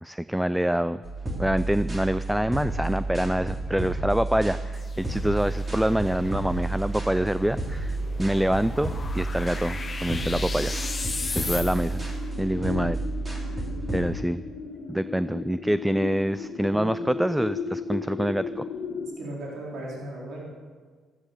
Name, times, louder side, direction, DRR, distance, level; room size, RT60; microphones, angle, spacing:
voice 1, 0.0-1.0 1.4-10.7 11.3-12.0 12.4-13.0 13.9-14.4 14.9-18.6, equal, 5° right, 14 dB, 0.4 m, -26 dB
sound 1, 1.0-14.0, right 2 dB, 25° right, 3.4 m, -31 dB
sound 2, 4.7-12.2, left 4 dB, 30° left, 1.3 m, -37 dB
sound 3, 7.6-19.1, left 5 dB, 80° left, 1.4 m, -37 dB
voice 2, 16.7-17.0 19.0-20.5, right 1 dB, 70° right, -3 dB, 3.8 m, -37 dB
13.5 x 13.5 x 6.6 m, 1.5 s
cardioid pair, 90°, 0 cm